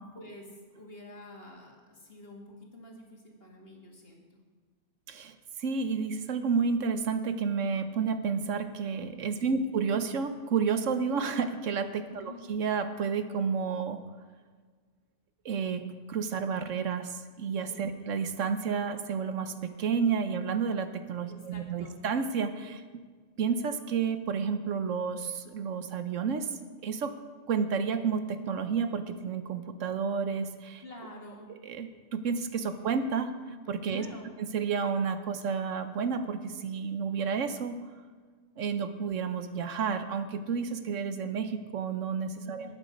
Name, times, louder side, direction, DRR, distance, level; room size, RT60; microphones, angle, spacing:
voice 1, 0.1-4.2 9.4-9.7 12.1-12.5 17.7-18.0 21.3-22.0 30.8-31.5 33.9-34.3 42.4-42.8, left 1 dB, 45° left, 0 dB, 2.3 m, -48 dB
voice 2, 5.1-14.0 15.4-23.0 23.4-26.5 26.8-27.1 27.5-30.8 31.5-33.3 33.7-34.1 34.4-37.8 38.6-42.8, right 6 dB, 70° right, 9 dB, 1.1 m, -31 dB
19.5 x 7.4 x 5.2 m, 1.5 s
omnidirectional pair, 1.3 m